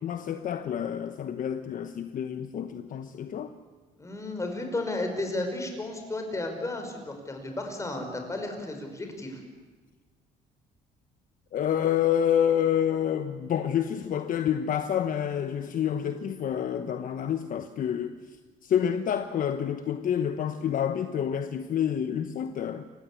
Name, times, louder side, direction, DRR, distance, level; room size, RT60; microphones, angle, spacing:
voice 1, 0.0-3.5 11.5-18.4 18.6-22.9, left 9 dB, 55° left, 1.1 m, -28 dB
voice 2, 4.0-9.4, left 2 dB, 20° left, 5.3 m, -33 dB
29.0 x 15.5 x 8.5 m
cardioid pair, 110°, 17 cm